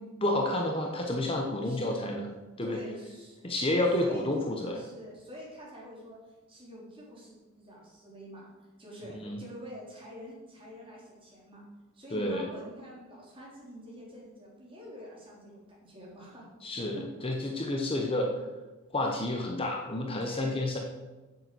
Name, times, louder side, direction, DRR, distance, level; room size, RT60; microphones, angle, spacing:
voice 1, 0.2-2.3 2.6-2.8 3.4-4.8 9.2-9.4 12.1-12.4 16.6-18.4 18.9-20.8, left 1 dB, 25° left, 2 dB, 0.9 m, -30 dB
voice 2, 1.6-2.2 2.6-3.4 4.0-4.2 4.7-6.2 6.5-8.5 8.8-11.6 11.9-16.5 17.0-17.1 19.0-19.1 20.2-20.7, equal, 25° right, -5 dB, 3.7 m, -46 dB
7.8 x 7.8 x 7.8 m, 1.2 s
head